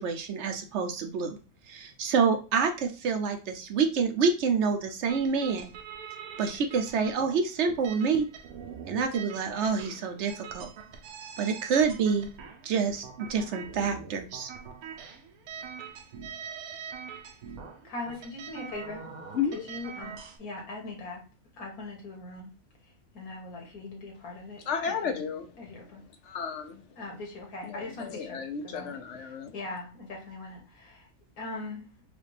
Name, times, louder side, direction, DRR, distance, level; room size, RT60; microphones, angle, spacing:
voice 1, 0.0-1.4 1.7-5.7 6.4-8.3 8.9-10.7 11.4-12.3 12.6-14.5, right 5 dB, 65° right, 6 dB, 0.8 m, -27 dB
sound 1, 5.1-20.4, right 7 dB, 80° right, 1.2 m, -44 dB
voice 2, 17.8-19.1 19.7-20.1 20.4-21.2 21.6-22.5 23.1-24.6 24.9-25.0 25.6-26.0 27.0-29.0 29.5-31.0 31.4-31.9, left 2 dB, 85° left, 0 dB, 1.9 m, -40 dB
voice 3, 19.3-19.7 24.6-25.9 26.2-27.1 27.6-29.5, left 6 dB, 65° left, 7 dB, 0.8 m, -34 dB
5.0 x 2.3 x 3.3 m, 0.34 s
omnidirectional pair, 1.5 m